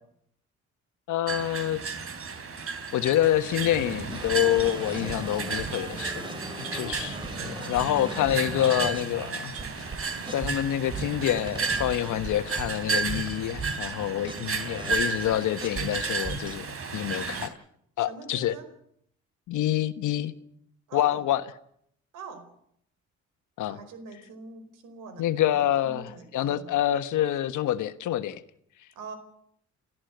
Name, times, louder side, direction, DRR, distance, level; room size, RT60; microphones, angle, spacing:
voice 1, 1.1-1.8 2.9-9.9 10.3-16.6 16.9-17.5 18.0-18.5 19.5-20.3 20.9-21.4 23.6-23.8 25.2-28.4, left 12 dB, 80° left, 1.4 m, -27 dB
sound 1, 1.3-17.5, right 5 dB, 50° right, 3.4 m, -33 dB
sound 2, 4.1-10.6 10.9-16.5, right 2 dB, 15° right, 2.7 m, -38 dB
voice 2, 6.7-7.5 13.0-13.2 18.0-18.7 20.9-21.2 22.1-22.5 23.7-26.7 28.9-29.2, right 4 dB, 90° right, 4.8 m, -44 dB
30.0 x 14.0 x 8.0 m
cardioid pair, 90°, 30 cm